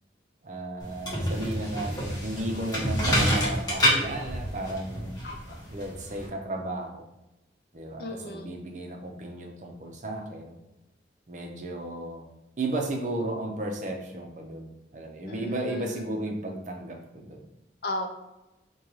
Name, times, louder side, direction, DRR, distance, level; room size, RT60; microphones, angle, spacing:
voice 1, 0.4-5.1 5.7-7.1 7.7-10.6 11.3-12.2 12.6-17.4, right 1 dB, 40° right, 2 dB, 0.6 m, -34 dB
sound 1, 0.8-6.3, equal, 20° left, 1.0 m, -28 dB
voice 2, 5.2-5.6 8.0-8.6 15.2-15.8 17.8-18.1, left 1 dB, 55° left, 3 dB, 0.5 m, -35 dB
5.1 x 2.2 x 3.1 m, 0.94 s
head